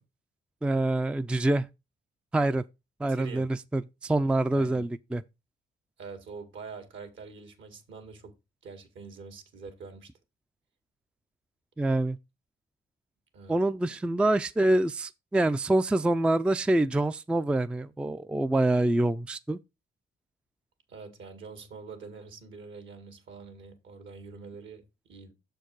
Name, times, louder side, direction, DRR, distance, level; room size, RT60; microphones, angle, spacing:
voice 1, 0.6-1.7 2.3-2.6 3.0-5.2 11.8-12.2 13.5-19.6, right 2 dB, 5° right, 0.3 m, -26 dB
voice 2, 3.1-3.5 4.5-4.9 6.0-8.3 8.6-10.1 13.3-13.6 20.9-25.3, right 4 dB, 70° right, 2.0 m, -45 dB
6.9 x 4.5 x 4.7 m
cardioid pair, 90°, 20 cm